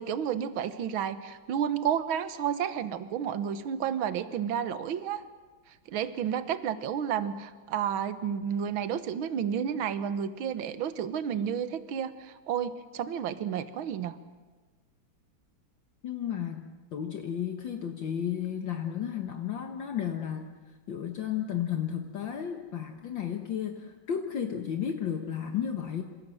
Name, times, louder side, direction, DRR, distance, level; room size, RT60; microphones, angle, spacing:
voice 1, 0.0-5.2 5.9-14.2, right 8 dB, 70° right, 12 dB, 1.9 m, -31 dB
voice 2, 16.0-20.5 20.9-26.0, left 9 dB, 60° left, 5 dB, 2.0 m, -33 dB
27.5 x 26.5 x 7.8 m, 1.3 s
omnidirectional pair, 2.4 m